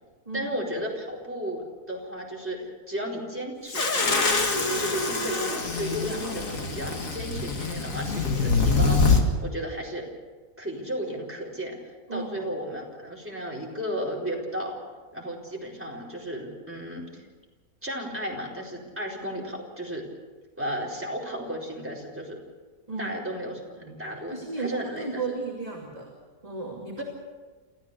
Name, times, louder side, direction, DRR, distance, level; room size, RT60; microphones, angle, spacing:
voice 1, 0.3-4.3 4.8-10.0 10.6-14.8 15.1-17.3 17.8-20.0 20.6-22.4 23.0-25.2 27.0-27.1, equal, 5° right, -3 dB, 4.4 m, -34 dB
sound 1, 3.7-9.2, left 4 dB, 55° left, 2.5 m, -25 dB
voice 2, 12.1-12.5 22.9-23.3 23.8-26.1 26.4-27.0, right 3 dB, 20° right, -2 dB, 2.7 m, -35 dB
28.5 x 14.5 x 6.9 m, 1.4 s
omnidirectional pair, 1.7 m